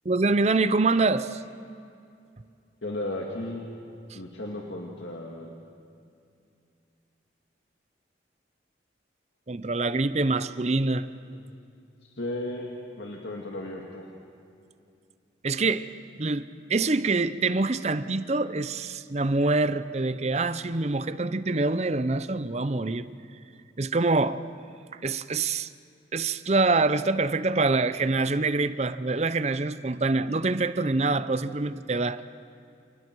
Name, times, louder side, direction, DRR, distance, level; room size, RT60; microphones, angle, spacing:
voice 1, 0.0-1.4 4.1-4.2 9.5-11.1 15.4-15.9 16.2-23.1 23.8-24.4 24.9-25.7 26.1-32.2, right 3 dB, 35° right, 0.6 m, -25 dB
voice 2, 2.8-3.6 4.1-5.5 11.3-11.4 12.2-12.7 12.9-14.1, left 1 dB, 70° left, 2.1 m, -34 dB
29.0 x 29.0 x 4.7 m
head